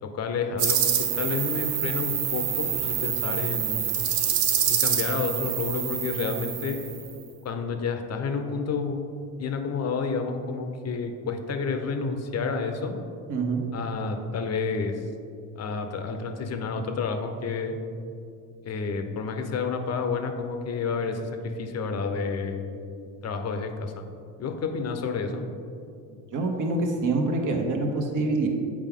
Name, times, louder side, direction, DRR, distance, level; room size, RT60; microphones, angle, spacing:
voice 1, 0.0-3.9 4.7-6.8 7.4-9.0 9.4-12.9 13.7-15.0 15.6-17.8 18.6-24.0 24.4-25.4, left 4 dB, 35° left, 6 dB, 0.7 m, -30 dB
sound 1, 0.6-7.1, right 9 dB, 75° right, 0.8 m, -26 dB
voice 2, 13.3-13.6 26.3-28.5, right 3 dB, 45° right, 2 dB, 1.2 m, -26 dB
7.5 x 4.7 x 3.6 m, 2.5 s
supercardioid pair, 90°, 43 cm